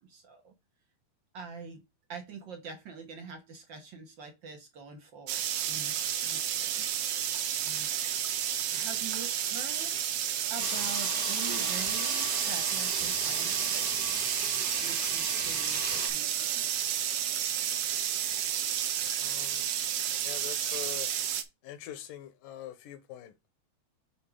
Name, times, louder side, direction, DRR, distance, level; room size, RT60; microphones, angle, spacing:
voice 1, 0.0-0.5 1.3-1.8 2.1-6.9 7.6-7.9 8.7-10.0 10.5-14.1 14.8-16.7, right 5 dB, 55° right, 1.3 m, -45 dB
sound 1, 5.3-21.4, right 10 dB, 80° right, 1.4 m, -31 dB
sound 2, 10.6-16.1, right 3 dB, 40° right, 1.4 m, -35 dB
voice 2, 19.2-19.8 20.2-21.1 21.6-23.5, left 12 dB, 80° left, 2.4 m, -44 dB
8.6 x 4.8 x 3.6 m
omnidirectional pair, 3.8 m